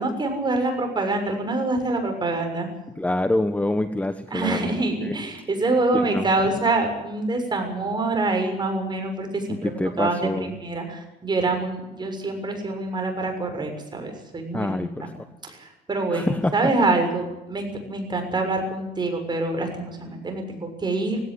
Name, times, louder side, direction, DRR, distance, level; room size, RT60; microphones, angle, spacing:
voice 1, 0.0-2.7 4.3-15.1 15.4-21.2, right 2 dB, 25° right, 4 dB, 6.8 m, -26 dB
voice 2, 3.0-5.1 5.9-6.2 9.6-10.5 14.5-15.1 16.1-16.5, left 1 dB, 10° left, 10 dB, 1.2 m, -26 dB
18.0 x 17.0 x 9.6 m, 0.94 s
cardioid pair, 110°, 17 cm